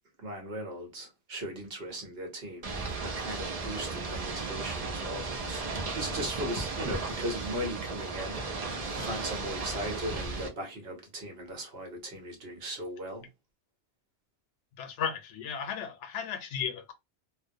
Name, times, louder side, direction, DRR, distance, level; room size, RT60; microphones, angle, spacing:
voice 1, 0.2-13.3, equal, 60° right, 1.1 m, -38 dB
Ocean / Boat Water vehicle, 2.6-10.5, right 3 dB, 45° right, 0.5 m, -35 dB
voice 2, 14.8-16.9, left 7 dB, 90° left, 0.9 m, -35 dB
2.4 x 2.0 x 2.6 m
omnidirectional pair, 1.2 m